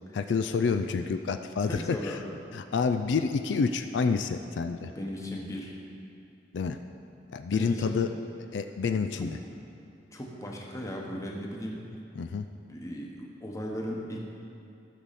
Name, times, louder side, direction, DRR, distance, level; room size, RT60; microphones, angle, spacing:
voice 1, 0.1-2.2 2.5-4.9 6.5-6.8 7.3-8.1 8.5-9.4 12.2-12.5, left 5 dB, 80° left, 8 dB, 0.4 m, -28 dB
voice 2, 1.6-2.3 4.9-5.7 7.5-8.0 8.9-9.3 10.1-11.8 12.7-14.2, equal, 20° left, -1 dB, 1.1 m, -36 dB
13.0 x 6.3 x 4.2 m, 2.7 s
head